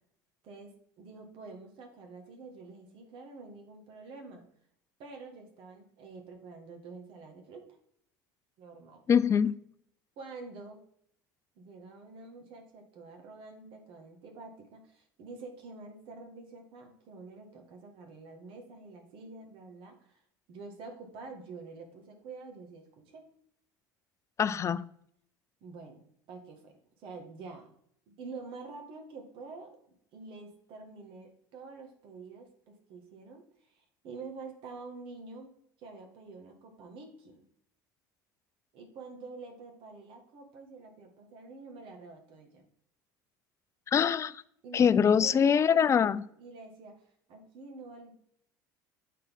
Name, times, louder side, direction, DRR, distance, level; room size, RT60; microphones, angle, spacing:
voice 1, 0.4-4.4 5.0-7.6 8.6-9.0 10.2-10.8 11.5-20.2 20.5-23.3 25.6-27.7 28.1-29.8 30.1-35.5 35.8-37.4 38.7-42.6 44.6-48.1, right 3 dB, 60° right, 4 dB, 1.7 m, -47 dB
voice 2, 9.1-9.5 24.4-24.9 43.9-44.4 44.7-46.2, left 7 dB, 30° left, 15 dB, 0.4 m, -24 dB
8.2 x 4.1 x 3.6 m, 0.68 s
hypercardioid pair, 80°, 10 cm